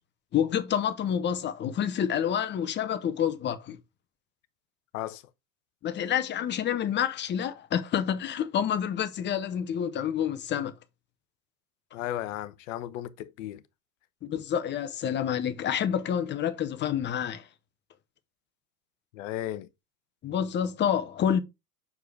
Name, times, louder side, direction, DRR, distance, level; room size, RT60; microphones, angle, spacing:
voice 1, 0.3-3.8 5.8-10.7 14.2-17.5 20.2-21.4, left 9 dB, 25° left, 0.8 m, -28 dB
voice 2, 11.9-13.6 19.1-19.7, left 13 dB, 50° left, 0.9 m, -35 dB
6.9 x 4.6 x 3.4 m
hypercardioid pair, 90°, 48 cm